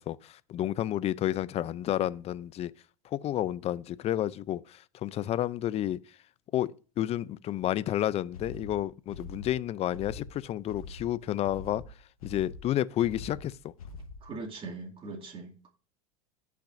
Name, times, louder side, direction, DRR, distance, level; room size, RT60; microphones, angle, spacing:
voice 1, 0.0-2.7 3.1-6.0 6.5-11.8 12.2-13.5, left 12 dB, 35° left, 0.5 m, -30 dB
sound 1, 8.3-14.4, left 3 dB, 90° left, 1.2 m, -44 dB
voice 2, 14.2-15.7, right 3 dB, 30° right, 2.4 m, -41 dB
16.0 x 5.9 x 2.6 m
hypercardioid pair, 95°, 18 cm